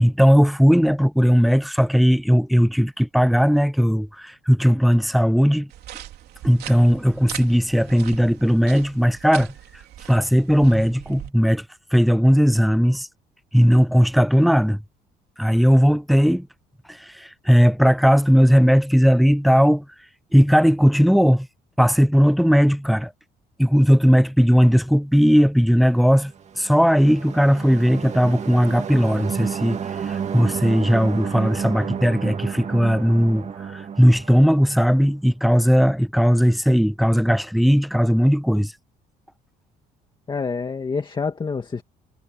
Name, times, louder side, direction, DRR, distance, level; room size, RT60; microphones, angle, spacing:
voice 1, 0.0-5.7 6.4-9.5 10.1-11.6 11.9-13.1 13.5-14.8 15.4-16.5 16.9-19.8 20.3-21.5 21.8-23.1 23.6-38.7, equal, ahead, 0.9 m, -17 dB
sound 1, 5.7-11.3, right 13 dB, 70° right, 3.4 m, -40 dB
sound 2, 26.3-35.0, right 7 dB, 40° right, 2.2 m, -31 dB
voice 2, 40.3-41.8, left 5 dB, 25° left, 2.1 m, -27 dB
cardioid pair, 110°, 17 cm